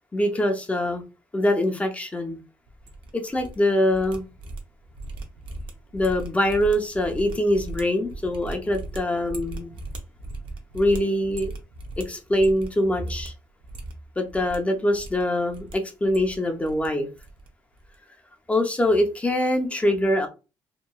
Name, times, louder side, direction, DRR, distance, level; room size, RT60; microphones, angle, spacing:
voice 1, 0.1-1.0 1.3-2.4 3.1-4.2 5.9-9.7 10.7-11.5 12.0-13.3 14.2-17.1 18.5-20.3, left 1 dB, 15° left, 0.6 m, -23 dB
sound 1, 2.7-3.6 3.8-12.8 13.0-13.3 13.6-14.6 14.9-15.7 16.0-16.9 17.1-17.5 17.7-17.9, right 2 dB, 75° right, 0.6 m, -38 dB
2.9 x 2.3 x 2.2 m
cardioid pair, 90°, 9 cm